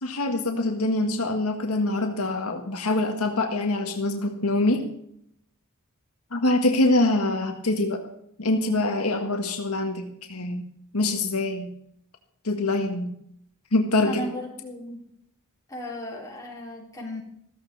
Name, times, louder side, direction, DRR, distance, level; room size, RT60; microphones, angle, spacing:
voice 1, 0.0-4.8 6.3-8.0 8.4-10.6 10.9-11.7 12.4-13.1 13.7-14.3, left 2 dB, 75° left, 3 dB, 1.8 m, -24 dB
voice 2, 14.0-15.0 15.7-17.2, left 1 dB, 15° left, -4 dB, 5.1 m, -35 dB
15.0 x 14.5 x 4.2 m, 0.71 s
head